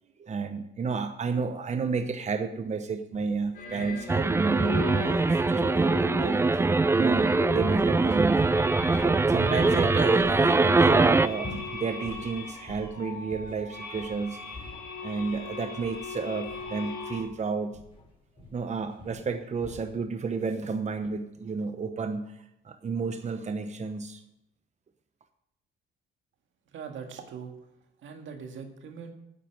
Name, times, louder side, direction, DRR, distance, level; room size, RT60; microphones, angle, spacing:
voice 1, 0.2-6.4 6.9-8.5 9.0-14.4 15.0-17.8 18.5-22.3 22.6-24.2, right 5 dB, 35° right, 7 dB, 0.9 m, -31 dB
sound 1, 3.1-20.0, left 1 dB, 30° left, 4.0 m, -48 dB
sound 2, 3.5-17.2, left 4 dB, 50° left, 4.3 m, -39 dB
sound 3, 4.1-11.3, right 3 dB, 15° right, 0.4 m, -22 dB
voice 2, 26.7-27.6 28.0-29.1, right 6 dB, 75° right, 5 dB, 1.9 m, -41 dB
9.3 x 8.3 x 7.6 m, 0.83 s
cardioid pair, 90°, 20 cm